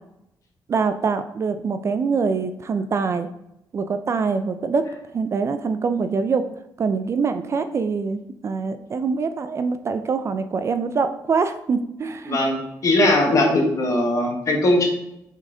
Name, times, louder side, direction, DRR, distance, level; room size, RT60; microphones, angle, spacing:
voice 1, 0.7-3.3 3.7-4.9 5.1-6.5 6.8-12.4, right 5 dB, 35° right, 10 dB, 0.3 m, -24 dB
voice 2, 12.8-14.9, left 1 dB, 45° left, 2 dB, 1.3 m, -19 dB
6.1 x 4.1 x 3.8 m, 0.83 s
wide cardioid pair, 155°, 8 cm